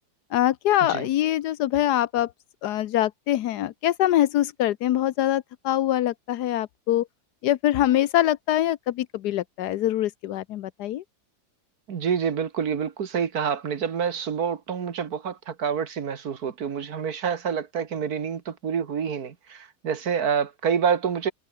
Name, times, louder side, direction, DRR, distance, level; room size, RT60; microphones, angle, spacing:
voice 1, 0.3-2.3 2.6-7.1 7.4-11.0, left 13 dB, 85° left, 1.3 m, -24 dB
voice 2, 11.9-21.3, right 7 dB, 65° right, 1.9 m, -27 dB
omnidirectional pair, 1.7 m